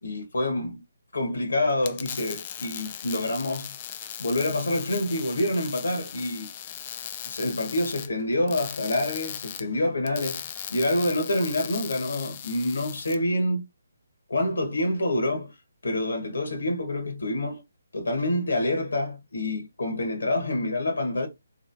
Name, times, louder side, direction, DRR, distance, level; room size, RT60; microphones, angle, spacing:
voice 1, 0.0-0.8 1.1-3.8 4.2-6.5 7.2-10.4 10.7-13.6 14.3-15.5 15.8-17.6 17.9-21.3, left 1 dB, 75° left, 1.2 m, -27 dB
sound 1, 1.7-13.2, left 9 dB, 30° left, 0.4 m, -38 dB
3.0 x 2.9 x 2.6 m
figure-of-eight pair, 150°, 0 cm